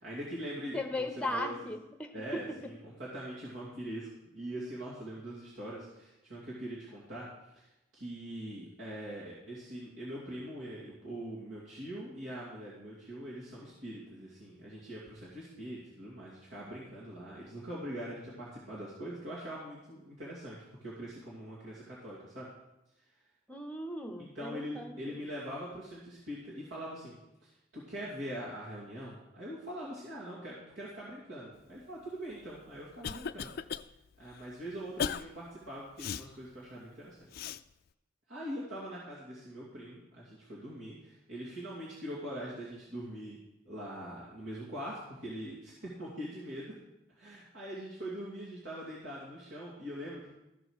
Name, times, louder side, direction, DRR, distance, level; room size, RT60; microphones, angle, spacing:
voice 1, 0.0-1.5 2.1-4.1 4.3-22.5 24.2-27.1 27.4-33.5 34.2-37.3 38.3-43.4 43.7-46.7 47.1-50.3, equal, 70° right, -7 dB, 2.5 m, -43 dB
voice 2, 0.7-2.4 23.5-25.2, left 1 dB, 5° left, 6 dB, 0.9 m, -37 dB
Cough, 32.4-33.9 34.3-34.4 35.0-35.2 36.0-36.3 37.3-37.6, left 7 dB, 50° left, 0.3 m, -36 dB
13.5 x 5.2 x 6.4 m, 0.93 s
head